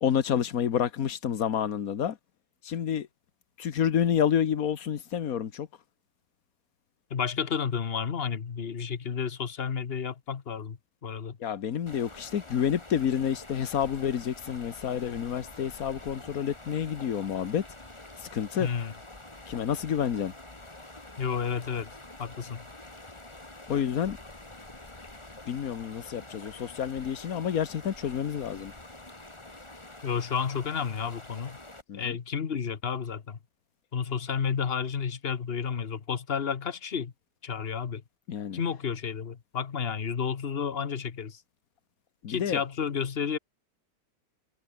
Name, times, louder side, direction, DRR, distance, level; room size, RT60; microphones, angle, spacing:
voice 1, 0.0-2.1 2.7-3.1 3.6-5.7 11.4-17.6 18.3-18.7 19.5-20.3 23.7-24.2 25.5-28.7 31.9-32.0 38.3-38.6 42.2-42.6, left 8 dB, 55° left, 1.5 m, -29 dB
voice 2, 7.1-11.4 18.6-18.9 21.2-21.9 22.2-22.6 30.0-31.6 31.9-33.4 33.9-37.1 37.4-38.0 38.5-41.4 42.3-43.4, left 6 dB, 40° left, 1.2 m, -31 dB
sound 1, 11.9-31.8, left 2 dB, 15° left, 2.4 m, -47 dB
omnidirectional pair, 2.0 m